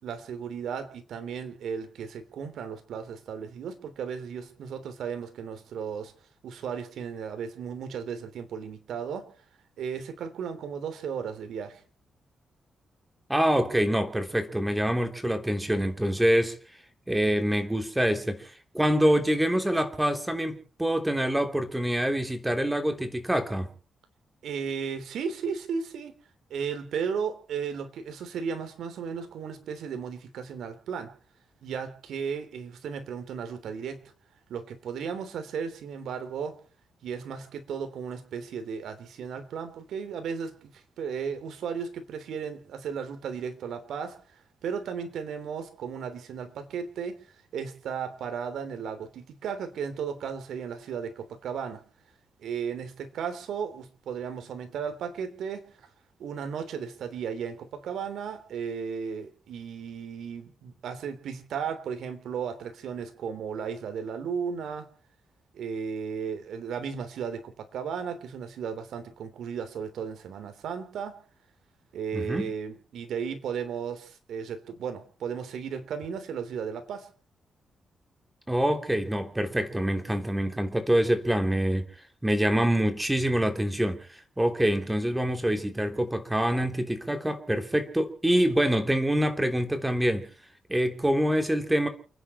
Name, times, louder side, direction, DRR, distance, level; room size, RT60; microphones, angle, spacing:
voice 1, 0.0-6.1 6.4-9.3 9.8-11.8 24.4-26.1 26.5-31.1 31.6-34.0 34.5-36.6 37.0-47.2 47.5-51.8 52.4-55.6 56.2-64.9 65.5-71.2 71.9-77.1, right 6 dB, 80° right, 8 dB, 3.3 m, -35 dB
voice 2, 13.3-16.5 17.1-23.7 72.1-72.5 78.5-81.9 82.2-84.1 84.4-90.3 90.7-91.9, equal, 10° right, 7 dB, 3.3 m, -25 dB
29.5 x 10.5 x 4.4 m, 0.41 s
cardioid pair, 75°, 0 cm